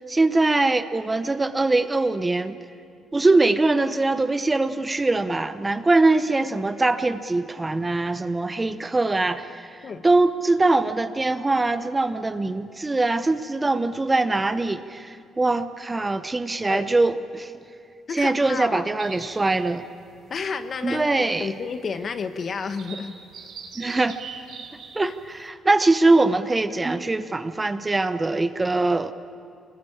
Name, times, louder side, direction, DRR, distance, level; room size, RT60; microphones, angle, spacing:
voice 1, 0.1-2.6 3.1-9.8 10.0-17.5 18.1-19.8 20.8-21.5 23.8-24.2 24.9-29.1, right 2 dB, 20° right, 11 dB, 0.9 m, -22 dB
voice 2, 18.1-18.9 20.3-21.1 21.4-23.1 25.0-25.1, left 5 dB, 50° left, 9 dB, 1.4 m, -31 dB
sound 1, 19.0-25.5, right 6 dB, 75° right, 3.6 m, -44 dB
24.0 x 20.5 x 8.8 m, 2.4 s
cardioid pair, 90°, 0 cm